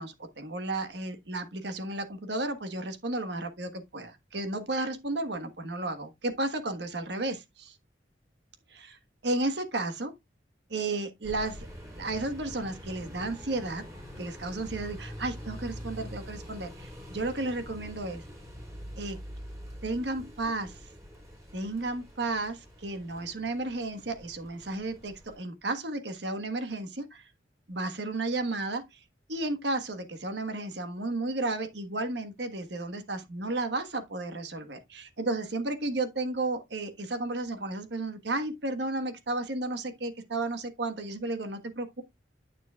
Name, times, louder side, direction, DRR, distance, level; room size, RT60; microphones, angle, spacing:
voice 1, 0.0-7.7 8.7-9.0 9.2-10.1 10.7-11.7 12.0-13.8 14.2-18.2 19.0-19.2 19.8-20.7 21.5-27.2 27.7-29.0 29.3-42.0, right 2 dB, 70° right, 1.4 m, -33 dB
sound 1, 11.2-25.4, equal, 20° right, 3.6 m, -45 dB
9.1 x 7.0 x 2.4 m
head